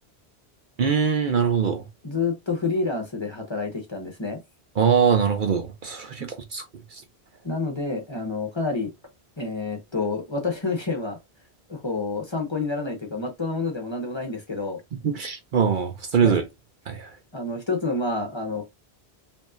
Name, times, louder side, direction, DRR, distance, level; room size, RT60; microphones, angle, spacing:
voice 1, 0.8-1.9 4.8-6.6 6.9-7.0 15.0-16.4 16.9-17.1, right 6 dB, 55° right, 0.7 m, -22 dB
voice 2, 2.0-4.4 7.4-8.9 9.4-11.2 11.7-14.8 16.2-16.3 17.3-18.6, left 3 dB, 30° left, 0.9 m, -28 dB
5.1 x 2.7 x 2.4 m
omnidirectional pair, 1.1 m